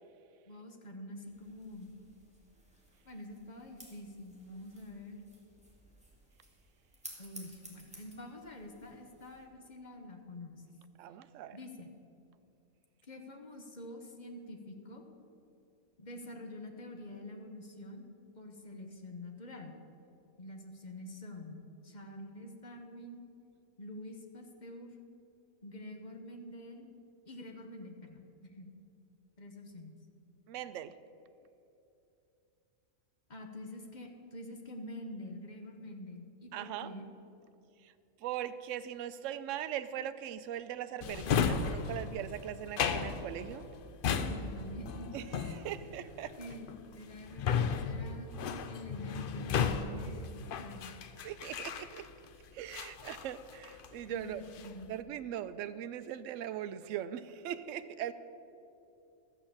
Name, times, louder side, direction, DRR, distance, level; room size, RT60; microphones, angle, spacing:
voice 1, 0.4-1.9 3.0-5.2 7.2-10.6 11.5-11.9 13.1-15.0 16.0-18.1 18.3-19.8 20.4-23.2 23.8-24.9 25.6-26.9 27.2-28.7 29.4-30.0 33.3-37.1 44.2-45.2 46.4-50.9 54.1-54.9, left 1 dB, 35° left, 3 dB, 1.0 m, -47 dB
sound 1, 1.3-9.4, right 1 dB, 5° right, 1.8 m, -56 dB
voice 2, 11.0-11.6 30.5-30.9 36.5-36.9 37.8-37.9 38.2-43.7 45.1-46.3 51.2-52.1 52.5-54.4 54.9-58.1, right 11 dB, 70° right, 12 dB, 0.9 m, -40 dB
Drawer open or close, 41.0-52.3 52.7-54.0 54.3-54.9, left 6 dB, 60° left, 0.6 m, -35 dB
12.5 x 7.0 x 7.2 m, 2.7 s
omnidirectional pair, 1.4 m